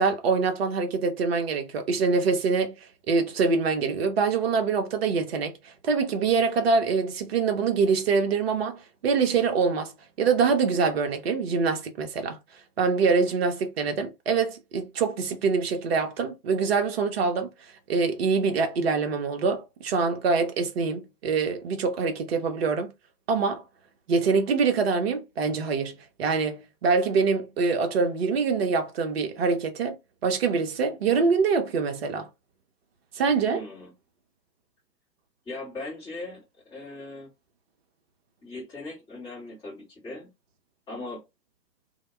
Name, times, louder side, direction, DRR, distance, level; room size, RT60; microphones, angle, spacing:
voice 1, 0.0-2.8 3.1-5.6 5.8-9.9 10.2-12.4 12.8-17.5 17.9-22.9 23.3-23.6 24.1-30.0 30.2-32.3 33.2-33.6, right 5 dB, 40° right, 0.6 m, -24 dB
voice 2, 33.5-33.9 35.4-37.3 38.4-40.3 40.9-41.3, left 2 dB, 10° left, 0.9 m, -39 dB
2.1 x 2.1 x 2.9 m
figure-of-eight pair, 120°, 50 cm